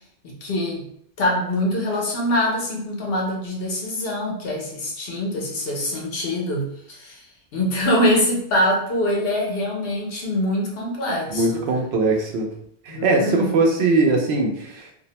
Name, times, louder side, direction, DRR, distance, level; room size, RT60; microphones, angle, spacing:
voice 1, 0.2-0.9 1.2-7.2 7.5-11.6 12.9-13.6, left 1 dB, 65° left, -1 dB, 0.9 m, -24 dB
voice 2, 11.3-12.5 12.8-14.8, right 3 dB, 80° right, 1 dB, 0.9 m, -20 dB
2.5 x 2.0 x 2.8 m, 0.70 s
omnidirectional pair, 1.1 m